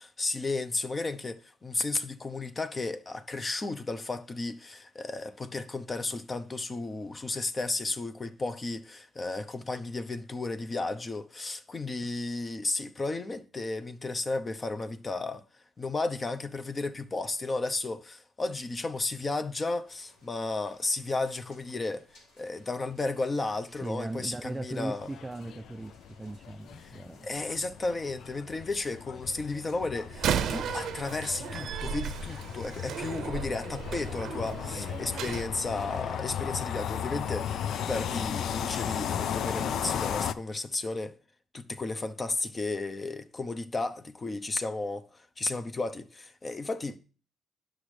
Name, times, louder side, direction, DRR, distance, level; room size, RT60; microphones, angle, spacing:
voice 1, 0.0-15.4 15.8-22.1 22.4-25.1 26.8-26.9 27.2-41.1 41.5-47.0, left 3 dB, 30° left, 0.8 m, -33 dB
sound 1, 19.8-37.8, left 1 dB, 90° left, 3.3 m, -63 dB
voice 2, 23.7-27.3, right 2 dB, 15° right, 0.3 m, -38 dB
sound 2, 25.0-40.3, left 9 dB, 75° left, 0.4 m, -36 dB
Slam, 30.1-35.5, right 8 dB, 75° right, 0.6 m, -34 dB
10.5 x 6.3 x 3.3 m
cardioid pair, 90°, 0 cm